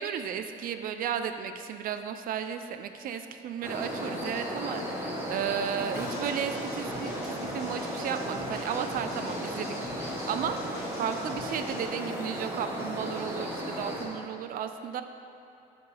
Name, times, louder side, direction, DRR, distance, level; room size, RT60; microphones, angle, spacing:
voice 1, 0.0-10.6 11.0-15.0, right 8 dB, 55° right, 8 dB, 0.5 m, -34 dB
sound 1, 3.6-14.1, equal, 15° right, 1.3 m, -35 dB
sound 2, 5.9-11.9, left 1 dB, 70° left, 1.7 m, -45 dB
6.9 x 6.6 x 3.4 m, 2.8 s
cardioid pair, 110°, 17 cm